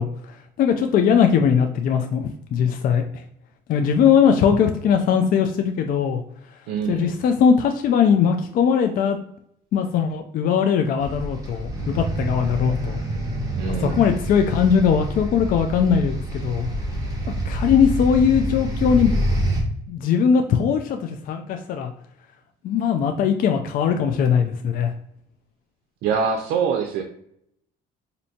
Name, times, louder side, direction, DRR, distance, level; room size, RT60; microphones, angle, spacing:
voice 1, 0.0-3.2 3.7-6.2 6.9-9.2 9.7-13.0 13.8-16.7 17.5-19.1 19.9-21.9 22.6-24.9, left 7 dB, 55° left, 5 dB, 0.4 m, -20 dB
voice 2, 6.7-7.2 13.6-14.0 26.0-27.0, right 6 dB, 85° right, 4 dB, 0.5 m, -24 dB
sound 1, 11.0-19.6, equal, 20° right, 1.2 m, -27 dB
4.3 x 2.7 x 2.7 m, 0.72 s
cardioid pair, 110°, 17 cm